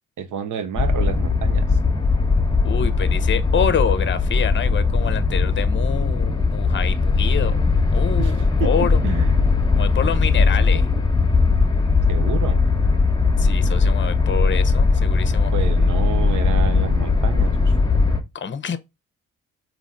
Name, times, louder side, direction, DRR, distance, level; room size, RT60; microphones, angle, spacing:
voice 1, 0.2-1.8 8.2-9.4 12.1-12.6 15.5-17.7, right 7 dB, 70° right, 0.9 m, -29 dB
sound 1, 0.8-18.2, left 4 dB, 15° left, 1.0 m, -19 dB
voice 2, 2.6-7.6 7.9-9.0 9.7-10.9 13.4-15.5 18.3-18.8, left 7 dB, 35° left, 0.7 m, -26 dB
4.0 x 3.0 x 3.8 m
supercardioid pair, 55°, 32 cm